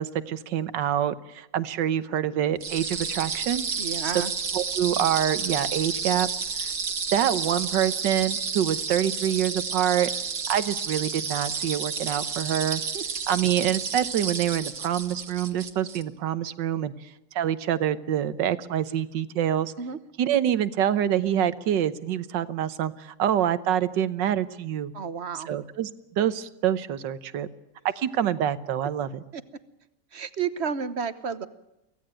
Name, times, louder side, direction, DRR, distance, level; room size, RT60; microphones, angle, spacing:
voice 1, 0.0-3.6 4.0-4.1 4.5-6.3 6.6-6.7 7.1-10.1 10.5-12.8 13.3-17.1 17.3-19.7 20.2-24.9 25.3-27.5 28.0-29.2, right 10 dB, 80° right, 14 dB, 1.6 m, -26 dB
sound 1, 2.6-16.0, right 5 dB, 60° right, 2.2 m, -31 dB
voice 2, 3.8-4.3 12.9-13.0 19.8-20.0 24.9-25.5 30.1-31.5, right 6 dB, 45° right, 13 dB, 1.2 m, -31 dB
24.0 x 16.5 x 8.9 m, 0.91 s
omnidirectional pair, 1.9 m